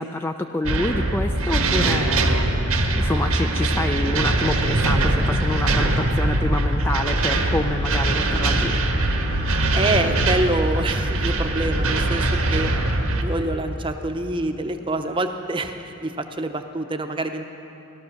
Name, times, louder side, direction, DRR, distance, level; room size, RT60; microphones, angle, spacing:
voice 1, 0.0-2.3 2.9-8.7, left 1 dB, 10° left, 5 dB, 0.4 m, -27 dB
sound 1, 0.6-13.2, right 1 dB, 90° right, 1.5 m, -22 dB
sound 2, 9.0-11.7, left 1 dB, 55° left, 1.8 m, -36 dB
voice 2, 9.7-12.7 13.1-17.5, right 2 dB, 25° right, 6 dB, 0.7 m, -26 dB
17.5 x 13.0 x 6.4 m, 2.8 s
head